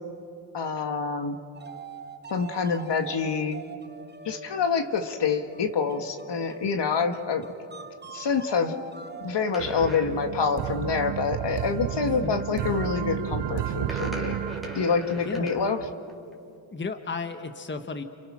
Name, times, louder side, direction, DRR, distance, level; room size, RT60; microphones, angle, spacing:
voice 1, 0.5-1.4 2.3-3.6 4.3-7.5 8.1-8.7 9.2-14.4 14.8-15.8, left 5 dB, 55° left, 7 dB, 1.7 m, -26 dB
sound 1, 1.5-11.0, right 4 dB, 20° right, 1.1 m, -44 dB
sound 2, 9.5-10.1 12.1-12.4 13.8-15.8 16.1-16.3, right 1 dB, ahead, 3.4 m, -37 dB
sound 3, 9.6-15.9, right 12 dB, 60° right, 0.5 m, -32 dB
voice 2, 16.7-18.0, left 4 dB, 25° left, 7 dB, 1.2 m, -33 dB
29.5 x 28.5 x 6.1 m, 2.6 s
cardioid pair, 105°, 48 cm